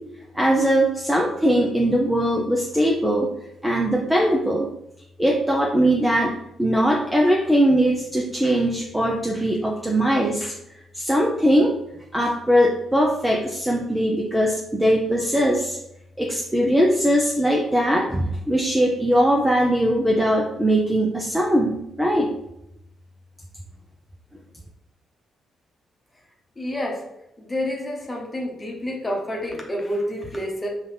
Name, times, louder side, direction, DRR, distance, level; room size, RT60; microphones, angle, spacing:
voice 1, 0.3-3.3 3.6-4.7 5.2-10.5 10.9-11.7 12.1-15.8 16.2-22.3, equal, 10° right, -1 dB, 0.7 m, -20 dB
voice 2, 26.6-27.0 27.4-30.7, left 1 dB, 25° left, -1 dB, 1.1 m, -28 dB
5.4 x 2.5 x 3.4 m, 0.83 s
figure-of-eight pair, 40°, 0 cm